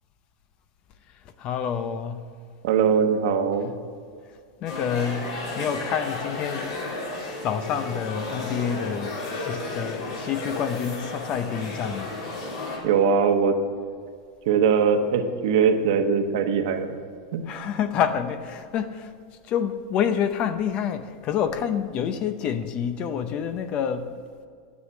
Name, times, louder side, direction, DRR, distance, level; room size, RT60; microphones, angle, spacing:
voice 1, 1.4-2.2 4.6-6.8 7.4-12.1 17.5-19.1 19.5-24.2, left 8 dB, 30° left, 10 dB, 0.6 m, -28 dB
voice 2, 2.6-3.7 12.8-13.5 14.5-16.9 17.3-17.4, right 6 dB, 60° right, 6 dB, 1.2 m, -21 dB
sound 1, 4.7-12.8, left 2 dB, 70° left, 3.5 m, -33 dB
9.7 x 8.0 x 8.3 m, 2.1 s
supercardioid pair, 165°, 3 cm